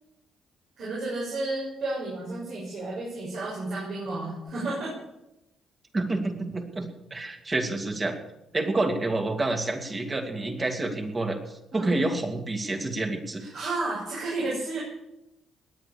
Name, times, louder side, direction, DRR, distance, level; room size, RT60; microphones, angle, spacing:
voice 1, 0.8-4.9 11.7-12.0 13.4-14.8, right 2 dB, 65° right, -6 dB, 6.8 m, -32 dB
voice 2, 5.9-8.2 8.5-11.4 11.7-13.4, right 2 dB, 30° right, 4 dB, 2.7 m, -28 dB
19.5 x 9.2 x 7.1 m, 0.90 s
cardioid pair, 90°, 0 cm